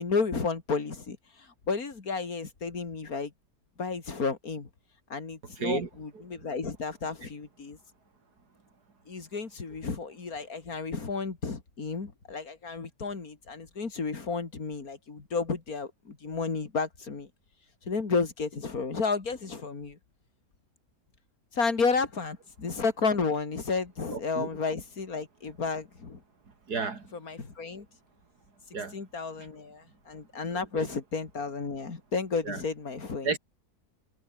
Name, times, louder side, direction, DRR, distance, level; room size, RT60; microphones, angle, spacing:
voice 1, 0.0-3.3 3.8-4.7 5.1-7.8 9.1-17.3 17.9-20.0 21.5-26.2 27.2-27.9 28.9-33.4, left 4 dB, 65° left, 3.2 m, -32 dB
voice 2, 5.4-5.9 24.1-24.5 26.5-27.1 28.7-29.0 29.3-29.5 30.5-30.9 32.4-32.6 33.2-33.4, right 4 dB, 80° right, 3.4 m, -33 dB
omnidirectional pair, 1.7 m